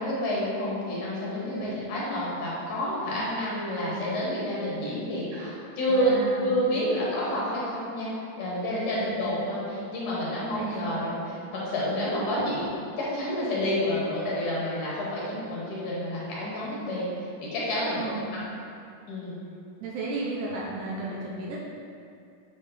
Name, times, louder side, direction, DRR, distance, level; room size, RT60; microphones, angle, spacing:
voice 1, 0.0-12.7 13.0-18.0 19.1-19.4, equal, 65° left, -7 dB, 2.6 m, -29 dB
voice 2, 5.3-5.6 5.9-6.6 9.0-9.2 10.5-11.0 12.1-12.4 17.9-18.5 19.8-21.6, right 3 dB, 80° right, -4 dB, 2.0 m, -35 dB
7.3 x 2.8 x 4.8 m, 2.4 s
omnidirectional pair, 3.9 m